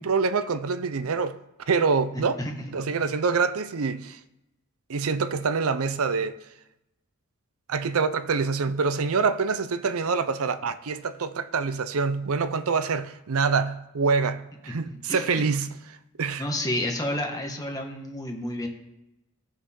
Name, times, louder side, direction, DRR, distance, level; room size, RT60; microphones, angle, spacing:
voice 1, 0.0-1.4 1.7-2.4 2.7-4.2 4.9-6.3 7.7-15.7 16.2-16.4, right 5 dB, 70° right, 0.6 m, -25 dB
voice 2, 2.1-2.9 14.9-15.2 16.4-18.7, left 1 dB, 15° left, 1.5 m, -31 dB
19.0 x 6.5 x 3.8 m
head